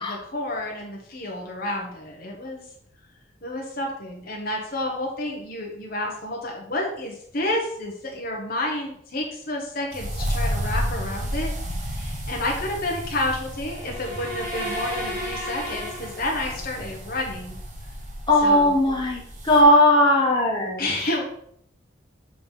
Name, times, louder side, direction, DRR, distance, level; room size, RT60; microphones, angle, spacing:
voice 1, 0.0-2.6 3.4-11.5 11.9-17.6 18.3-18.7 20.8-21.2, left 1 dB, 50° left, 0 dB, 1.1 m, -30 dB
sound 1, 9.9-19.6, equal, 40° right, 1.2 m, -32 dB
sound 2, 13.7-16.7, equal, 10° right, 2.5 m, -33 dB
voice 2, 18.3-19.2 19.4-20.8, left 1 dB, 25° left, -2 dB, 1.4 m, -17 dB
7.3 x 3.4 x 5.4 m, 0.67 s
head